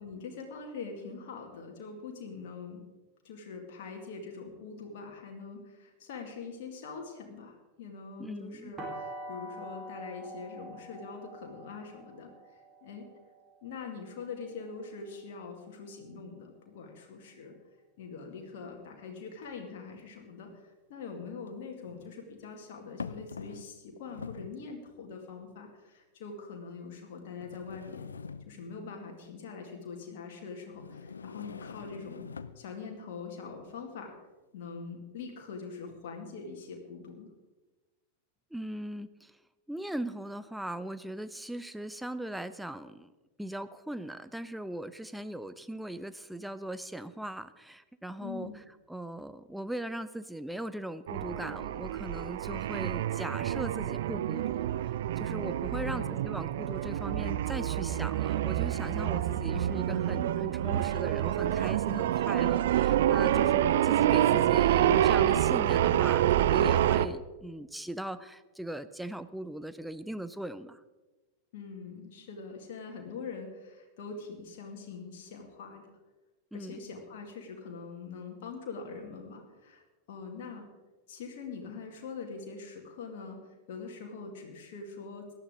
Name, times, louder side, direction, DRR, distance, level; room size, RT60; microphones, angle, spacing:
voice 1, 0.0-2.8 3.2-13.1 13.6-17.5 18.0-28.1 28.5-32.3 32.6-34.2 34.5-37.3 48.2-48.5 55.7-56.1 63.3-63.5 71.5-75.9 76.5-79.8 80.1-80.6 81.1-85.3, left 5 dB, 55° left, 1 dB, 2.1 m, -43 dB
voice 2, 8.2-8.7 38.5-39.4 39.7-43.1 43.4-48.6 48.9-70.8 76.5-76.8, right 1 dB, ahead, 13 dB, 0.5 m, -39 dB
sound 1, 8.8-14.6, right 1 dB, 20° right, 3.9 m, -45 dB
sound 2, 20.0-20.1 21.5-22.1 23.0-23.8 24.1-24.6 25.4-25.5 26.3-26.4 27.4-28.8 30.7-32.7, left 5 dB, 75° left, 0.5 m, -44 dB
sound 3, 51.1-67.1, right 11 dB, 55° right, 0.4 m, -27 dB
18.0 x 11.5 x 3.7 m, 1.2 s
figure-of-eight pair, 90°, 0 cm